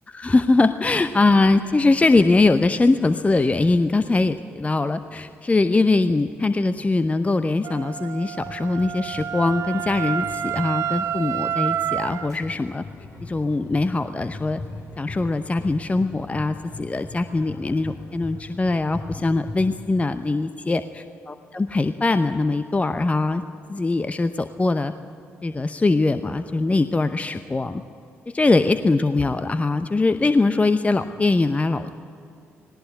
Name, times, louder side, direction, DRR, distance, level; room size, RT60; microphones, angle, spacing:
voice 1, 0.1-12.8 13.2-14.6 15.0-23.4 23.7-24.9 25.4-27.8 28.3-32.1, left 3 dB, 20° left, 11 dB, 0.8 m, -22 dB
Wind instrument woodwind instrument, 7.6-12.3, right 9 dB, 50° right, 0.8 m, -28 dB
sound 1, 8.4-20.0, left 2 dB, 60° left, 3.6 m, -40 dB
19.0 x 19.0 x 9.7 m, 2.7 s
figure-of-eight pair, 40°, 7 cm